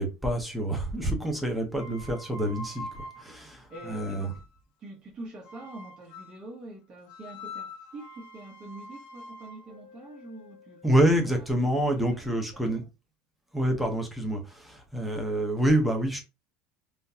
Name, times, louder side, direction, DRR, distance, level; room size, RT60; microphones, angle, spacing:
voice 1, 0.0-4.3 10.8-12.8 13.5-16.2, right 1 dB, ahead, 0.9 m, -27 dB
sound 1, 1.7-4.6 5.4-6.5 7.1-11.1, left 2 dB, 60° left, 0.5 m, -45 dB
voice 2, 3.3-4.4 4.8-11.0 11.3-11.8 12.1-12.2 12.5-12.8, right 2 dB, 35° right, 1.2 m, -45 dB
3.7 x 2.3 x 2.8 m
supercardioid pair, 135°, 3 cm